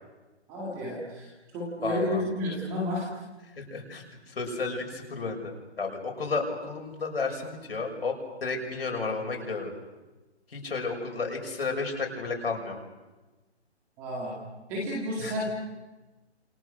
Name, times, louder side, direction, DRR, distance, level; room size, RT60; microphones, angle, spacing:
voice 1, 0.5-3.1 14.0-14.4 14.7-15.5, left 1 dB, 5° right, -3 dB, 2.0 m, -31 dB
voice 2, 1.8-2.2 3.6-8.1 8.4-9.7 10.5-12.8 15.2-15.3, left 4 dB, 60° left, 2 dB, 6.4 m, -32 dB
28.0 x 27.0 x 6.5 m, 1.1 s
hypercardioid pair, 175°, 34 cm